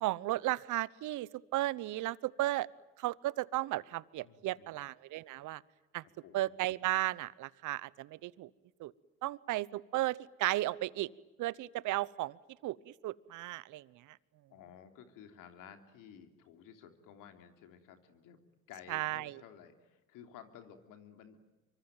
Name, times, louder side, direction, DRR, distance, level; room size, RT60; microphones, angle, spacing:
voice 1, 0.0-2.7 3.0-5.6 5.9-6.0 6.3-8.5 8.8-8.9 9.2-11.1 11.4-12.4 12.6-14.2 18.9-19.4, right 16 dB, 65° right, 21 dB, 1.0 m, -35 dB
voice 2, 4.2-4.7 6.2-6.5 14.5-18.4 18.7-21.4, left 8 dB, 70° left, 7 dB, 3.4 m, -54 dB
25.5 x 24.0 x 9.1 m, 1.1 s
supercardioid pair, 75°, 33 cm